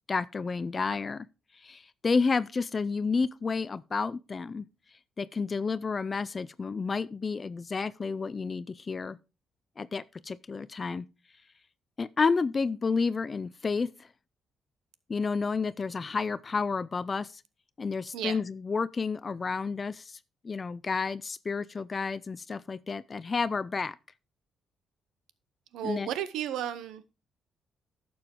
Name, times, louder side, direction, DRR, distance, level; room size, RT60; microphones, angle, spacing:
voice 1, 0.1-1.3 1.5-4.7 5.2-9.2 9.8-11.1 12.0-14.1 15.1-17.4 17.8-20.2 20.4-24.0 25.8-26.1, left 4 dB, 35° left, 0.4 m, -30 dB
voice 2, 25.7-27.0, right 10 dB, 85° right, 0.8 m, -33 dB
11.5 x 6.9 x 3.7 m
cardioid pair, 90°, 0 cm